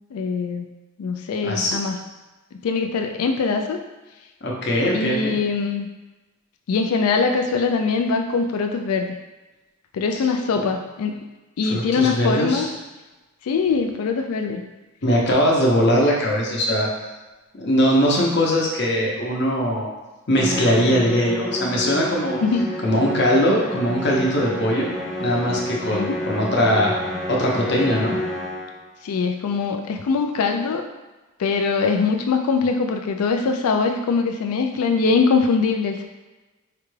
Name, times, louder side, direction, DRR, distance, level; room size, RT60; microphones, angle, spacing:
voice 1, 0.1-0.7 1.0-2.0 2.6-3.8 4.9-5.9 6.7-9.1 9.9-11.2 11.6-12.7 13.4-14.6 22.4-22.7 25.9-26.2 29.0-30.8 31.4-36.1, left 4 dB, 80° left, 4 dB, 0.4 m, -22 dB
voice 2, 1.4-1.8 4.4-5.3 10.6-10.7 11.7-12.7 15.0-16.9 17.6-19.9 20.3-22.4 22.8-24.9 25.2-26.9 27.3-28.2, equal, 50° left, -2 dB, 0.8 m, -20 dB
Musical instrument, 20.4-28.9, equal, ahead, 0.3 m, -29 dB
4.8 x 2.2 x 3.2 m, 1.1 s
head